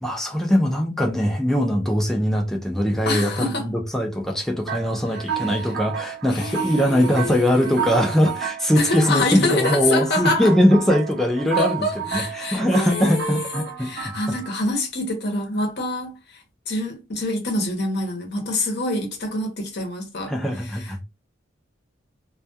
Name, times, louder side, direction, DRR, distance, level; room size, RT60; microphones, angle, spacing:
voice 1, 0.0-14.1 20.3-21.0, equal, ahead, 0.4 m, -21 dB
voice 2, 3.1-3.7 5.3-5.7 6.3-8.1 8.7-10.5 11.6-21.0, left 2 dB, 60° left, 0.8 m, -27 dB
sound 1, 4.7-14.6, right 8 dB, 55° right, 0.5 m, -32 dB
2.2 x 2.2 x 2.7 m
head